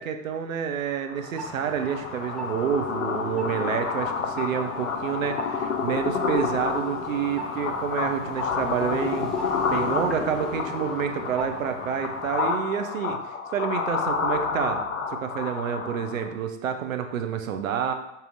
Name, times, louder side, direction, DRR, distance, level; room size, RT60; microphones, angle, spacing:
voice 1, 0.0-9.3 9.7-13.2 13.5-14.8 15.2-17.9, right 8 dB, 85° right, 6 dB, 0.5 m, -28 dB
sound 1, 1.0-16.4, left 5 dB, 85° left, 0.5 m, -29 dB
sound 2, 1.3-12.7, right 1 dB, ahead, 0.6 m, -40 dB
5.4 x 2.7 x 2.4 m, 0.86 s
figure-of-eight pair, 85°, 40 cm